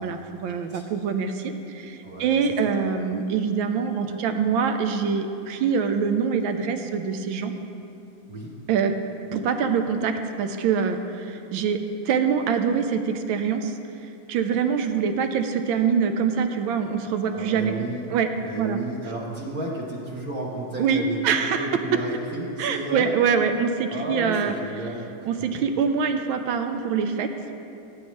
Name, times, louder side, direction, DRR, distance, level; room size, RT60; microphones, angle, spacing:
voice 1, 0.0-7.5 8.7-8.9 9.3-13.7 14.3-17.8 18.1-18.3 18.6-18.8 20.8-21.7 22.6-24.5 25.2-27.3, right 6 dB, 75° right, 7 dB, 1.4 m, -24 dB
voice 2, 2.0-2.7 8.3-8.5 17.3-23.1 23.9-25.3, right 1 dB, 50° right, -3 dB, 1.4 m, -33 dB
17.0 x 8.9 x 3.1 m, 2.7 s
omnidirectional pair, 2.3 m